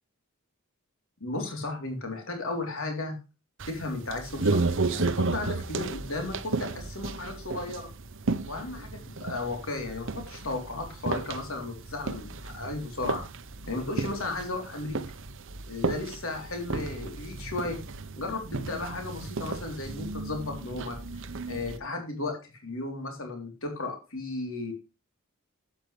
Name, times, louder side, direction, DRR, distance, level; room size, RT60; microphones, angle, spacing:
voice 1, 1.2-3.2 3.7-7.9 8.4-13.2 13.7-15.0 15.7-17.8 18.2-21.0 21.5-24.7, left 2 dB, 65° left, 3 dB, 3.6 m, -35 dB
sound 1, 3.6-21.8, right 3 dB, 60° right, 0.9 m, -33 dB
12.0 x 9.5 x 3.3 m, 0.29 s
head